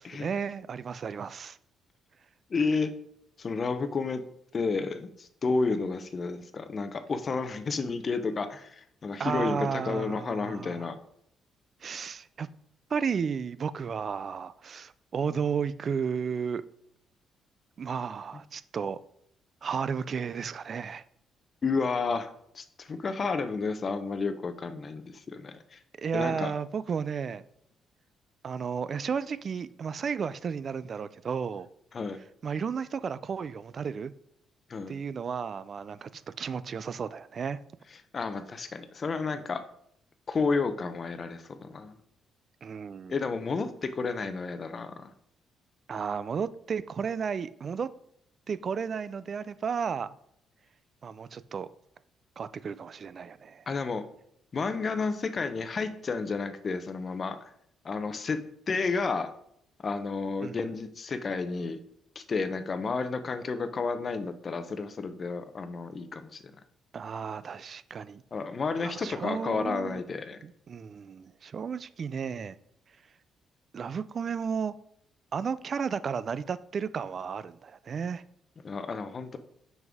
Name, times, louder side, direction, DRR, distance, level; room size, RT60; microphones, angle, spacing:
voice 1, 0.0-1.6 9.2-10.9 11.8-12.5 12.9-16.6 17.8-19.0 19.6-21.0 26.0-27.4 28.4-31.7 32.4-34.1 34.9-37.6 42.6-43.2 45.9-47.9 48.5-50.1 51.0-51.7 52.4-53.7 60.4-60.7 66.9-68.2 68.8-70.0 70.4-72.6 73.7-74.7 75.3-78.2, right 6 dB, 50° right, 0.4 m, -33 dB
voice 2, 2.5-2.9 3.4-4.2 4.5-11.0 21.6-25.8 26.1-26.5 31.9-32.2 34.7-34.9 38.1-39.6 40.3-41.9 43.1-45.1 53.7-54.0 54.5-57.4 57.8-58.4 58.7-59.3 59.8-61.8 62.2-66.4 68.3-70.4 78.6-79.4, left 4 dB, 40° left, 0.7 m, -31 dB
6.1 x 5.4 x 3.5 m
cardioid pair, 85°, 0 cm